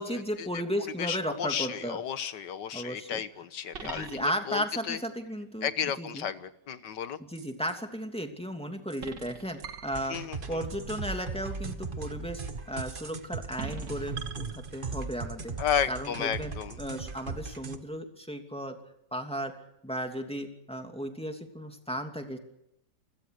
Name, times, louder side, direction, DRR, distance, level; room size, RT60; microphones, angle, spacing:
voice 1, 0.0-2.0 2.7-3.2 3.8-6.2 7.2-10.2 10.5-15.5 15.9-16.5 16.8-18.8 19.1-19.6 19.8-22.4, equal, 5° left, 4 dB, 2.7 m, -35 dB
voice 2, 1.0-4.1 4.5-5.0 5.6-7.2 10.1-10.6 15.6-16.8, left 8 dB, 75° left, 13 dB, 1.8 m, -32 dB
sound 1, 1.1-1.6 2.3-2.4 3.7-4.6 7.3-7.8 8.9-10.5 12.9-13.2 13.6-15.1 15.7-16.0 16.9-17.0, right 6 dB, 85° right, 2.4 m, -44 dB
sound 2, 9.9-17.8, right 4 dB, 30° right, 1.5 m, -38 dB
29.0 x 21.0 x 6.7 m, 0.82 s
omnidirectional pair, 1.9 m